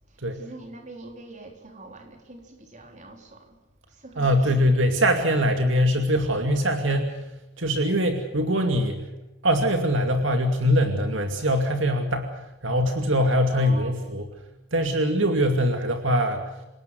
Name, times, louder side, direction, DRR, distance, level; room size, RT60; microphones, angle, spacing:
voice 1, 0.1-3.6 3.9-4.7 13.5-14.0, right 2 dB, 35° right, 4.1 m, -44 dB
voice 2, 4.2-7.2 7.6-9.0 9.4-12.3 12.6-14.2 14.7-16.4, equal, 60° right, 2.5 m, -22 dB
28.5 x 18.5 x 7.8 m
head